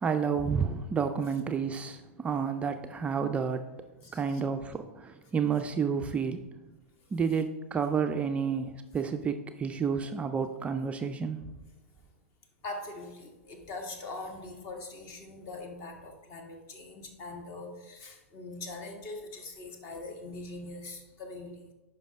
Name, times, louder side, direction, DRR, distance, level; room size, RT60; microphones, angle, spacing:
voice 1, 0.0-3.7 4.1-6.5 7.1-11.4, right 6 dB, 15° right, 0.4 m, -30 dB
voice 2, 4.0-4.4 12.6-21.7, left 2 dB, 40° left, 1.7 m, -42 dB
10.0 x 5.3 x 3.5 m
figure-of-eight pair, 105°, 7 cm